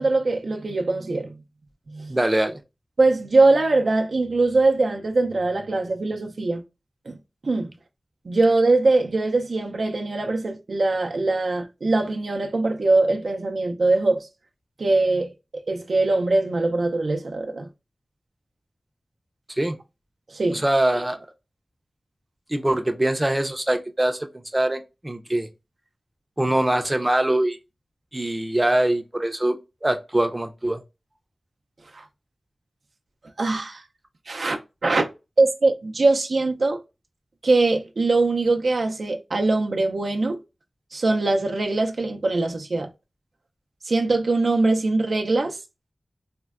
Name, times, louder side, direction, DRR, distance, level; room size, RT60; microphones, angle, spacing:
voice 1, 0.0-1.4 1.9-2.1 3.0-6.6 7.1-7.2 7.4-7.7 8.2-14.3 14.8-15.3 15.7-17.7 20.3-20.6 31.9-32.1 33.4-33.8 34.3-35.1 35.4-36.8 37.4-40.4 40.9-42.9 43.8-45.6, right 2 dB, 80° right, 0.4 m, -22 dB
voice 2, 2.1-2.6 19.5-19.8 20.5-21.3 22.5-25.5 26.4-27.6 28.1-30.8, right 1 dB, 20° right, 0.5 m, -23 dB
4.2 x 2.1 x 2.3 m
cardioid pair, 50°, 0 cm